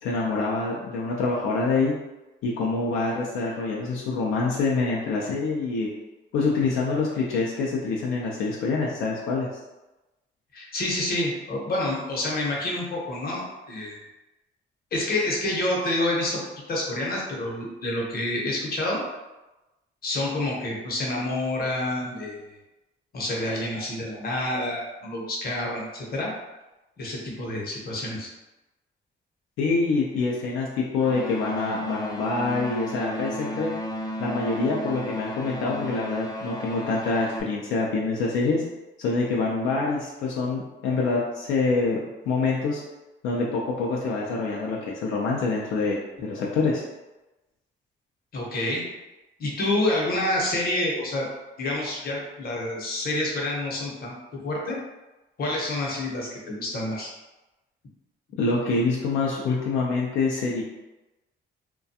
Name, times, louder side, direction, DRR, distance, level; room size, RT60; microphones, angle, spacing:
voice 1, 0.0-1.9 2.4-5.9 6.3-9.5 29.6-33.7 34.2-38.6 39.0-42.0 42.3-42.8 43.2-46.8 58.4-60.6, left 3 dB, 85° left, -3 dB, 0.4 m, -26 dB
voice 2, 10.5-14.0 14.9-16.4 16.7-19.0 20.0-22.5 23.1-26.3 27.0-28.3 48.3-48.8 49.4-51.3 51.6-54.8 55.4-57.1, left 1 dB, 50° left, -3 dB, 0.8 m, -28 dB
sound 1, 31.0-37.4, equal, 20° left, 0.4 m, -33 dB
2.3 x 2.2 x 2.7 m, 1.0 s
cardioid pair, 90°, 20 cm